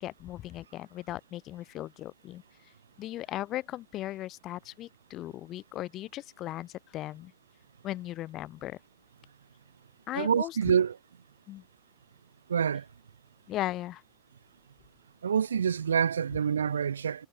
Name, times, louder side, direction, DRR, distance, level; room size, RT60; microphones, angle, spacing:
voice 1, 0.0-2.4 3.0-7.3 7.8-8.8 10.1-10.8 11.5-11.6 13.5-14.0, left 14 dB, 45° left, 1.2 m, -37 dB
voice 2, 10.1-11.0 12.5-12.8 15.2-17.3, right 7 dB, 90° right, 0.4 m, -26 dB
hypercardioid pair, 90°, 0 cm